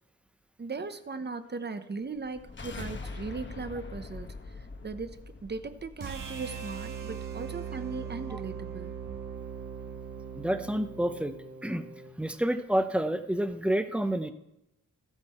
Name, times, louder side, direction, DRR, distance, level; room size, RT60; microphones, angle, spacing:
voice 1, 0.6-8.9, right 4 dB, 35° right, 10 dB, 0.9 m, -38 dB
sound 1, 2.2-7.3, left 3 dB, 35° left, 1.1 m, -43 dB
sound 2, 6.0-12.1, right 7 dB, 85° right, 1.4 m, -40 dB
voice 2, 10.4-11.4 11.6-11.9 12.2-14.3, right 1 dB, 5° right, 9 dB, 0.8 m, -29 dB
14.0 x 8.0 x 4.3 m, 0.86 s
wide cardioid pair, 90°, 31 cm